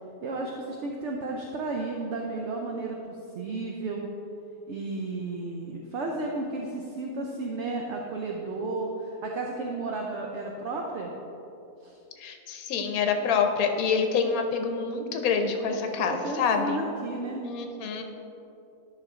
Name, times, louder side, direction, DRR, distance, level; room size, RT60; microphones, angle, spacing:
voice 1, 0.2-4.1 4.7-11.1 11.8-12.0 15.7-15.8 16.1-17.4, right 3 dB, 60° right, 0 dB, 0.8 m, -33 dB
voice 2, 12.2-16.8 17.4-18.0, left 5 dB, 70° left, 5 dB, 1.1 m, -27 dB
11.0 x 5.6 x 3.6 m, 2.8 s
omnidirectional pair, 1.7 m